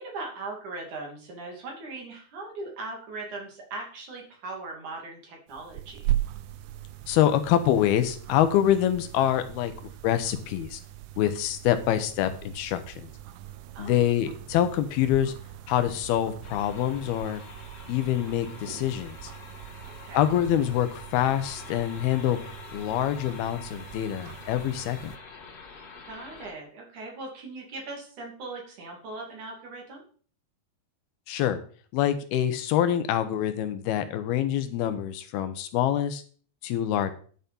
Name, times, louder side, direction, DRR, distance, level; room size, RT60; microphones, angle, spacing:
voice 1, 0.0-6.1 13.7-13.9 19.8-20.2 26.1-30.0, right 3 dB, 55° right, 0 dB, 4.2 m, -39 dB
sound 1, 5.5-25.2, right 13 dB, 80° right, 1.7 m, -39 dB
voice 2, 7.1-10.8 11.2-13.1 13.8-15.3 15.7-17.4 17.9-19.3 20.1-25.1 31.3-31.6 31.9-36.2 36.6-37.1, left 11 dB, 85° left, 10 dB, 2.9 m, -25 dB
sound 2, 16.4-26.5, left 4 dB, 45° left, 3.0 m, -46 dB
10.5 x 7.0 x 5.3 m, 0.44 s
omnidirectional pair, 4.3 m